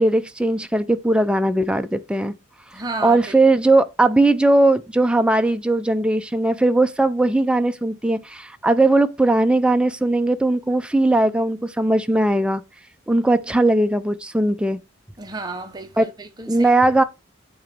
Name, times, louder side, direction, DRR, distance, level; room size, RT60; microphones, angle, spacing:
voice 1, 0.0-2.3 2.7-12.6 13.1-14.8 16.0-16.1 16.5-17.0, right 2 dB, 5° right, 0.4 m, -19 dB
voice 2, 2.7-3.4 15.2-16.7, right 3 dB, 20° right, 0.9 m, -32 dB
8.6 x 3.0 x 5.1 m
head